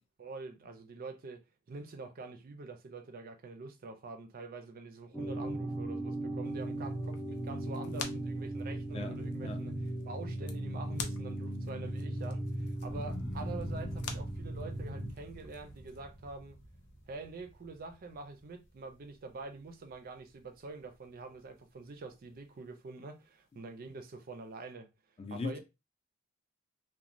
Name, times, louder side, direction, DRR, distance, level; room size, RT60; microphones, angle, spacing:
voice 1, 0.2-1.4 1.7-9.7 10.0-16.6 17.1-24.9 25.3-25.6, right 3 dB, 40° right, 0.4 m, -46 dB
sound 1, 5.1-15.1, right 1 dB, ahead, 0.7 m, -37 dB
sound 2, 6.4-16.0, left 7 dB, 85° left, 0.5 m, -49 dB
voice 2, 8.9-9.6 25.2-25.6, left 3 dB, 25° left, 0.3 m, -39 dB
sound 3, 12.8-19.1 19.6-20.2, left 1 dB, 55° left, 0.8 m, -47 dB
2.9 x 2.1 x 2.5 m
head